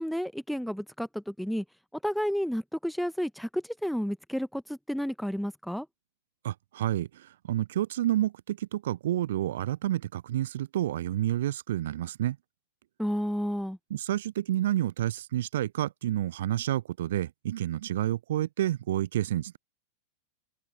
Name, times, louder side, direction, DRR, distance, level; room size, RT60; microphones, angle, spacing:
voice 1, 0.0-1.6 2.0-5.9 13.0-13.8, equal, ahead, 1.4 m, -31 dB
voice 2, 6.4-12.4 13.9-19.6, right 13 dB, 60° right, 0.8 m, -29 dB
figure-of-eight pair, 90°, 0 cm